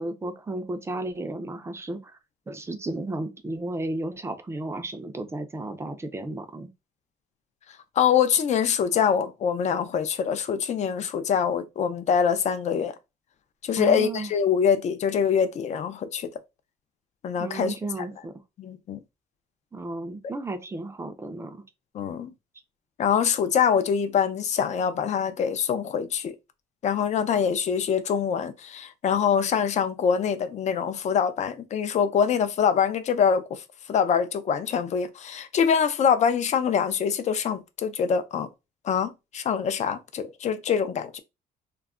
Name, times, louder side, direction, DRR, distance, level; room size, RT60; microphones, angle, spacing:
voice 1, 0.0-2.1 2.5-6.7 13.8-14.3 17.4-18.3 19.7-21.6, right 2 dB, 15° right, 0.5 m, -33 dB
voice 2, 8.0-12.9 13.6-16.3 17.2-17.7 18.6-19.0 21.9-22.3 23.0-26.3 26.8-33.6 33.9-38.5 38.8-41.2, left 7 dB, 45° left, 0.5 m, -24 dB
2.3 x 2.1 x 3.5 m
cardioid pair, 110°, 17 cm